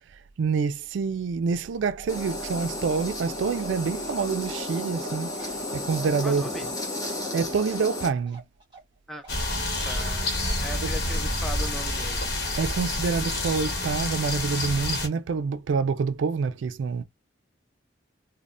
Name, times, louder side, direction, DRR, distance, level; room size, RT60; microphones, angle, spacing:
voice 1, 0.4-6.4 7.3-8.4 10.8-10.9 12.6-17.0, right 5 dB, 75° right, 0.3 m, -27 dB
Bark, 2.0-9.0 9.2-9.4, right 2 dB, 25° right, 1.2 m, -47 dB
sound 1, 2.1-8.1, left 1 dB, 20° left, 0.8 m, -33 dB
voice 2, 6.2-6.7 9.1-9.3 9.8-10.3 10.6-12.3, equal, ahead, 0.4 m, -38 dB
sound 2, 9.3-15.1, left 1 dB, 55° left, 1.0 m, -28 dB
3.1 x 2.1 x 2.5 m
head